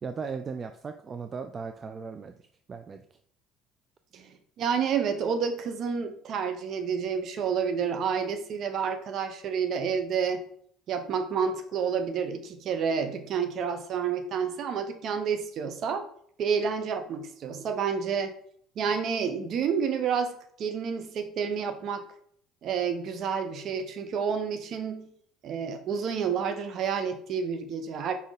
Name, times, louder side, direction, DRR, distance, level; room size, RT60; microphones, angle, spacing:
voice 1, 0.0-3.0, right 5 dB, 35° right, 8 dB, 0.5 m, -37 dB
voice 2, 4.6-10.4 10.9-16.0 16.4-18.3 18.8-22.0 22.6-25.1 25.4-28.1, right 6 dB, 55° right, 7 dB, 1.0 m, -29 dB
5.2 x 4.3 x 4.9 m, 0.62 s
hypercardioid pair, 65°, 0 cm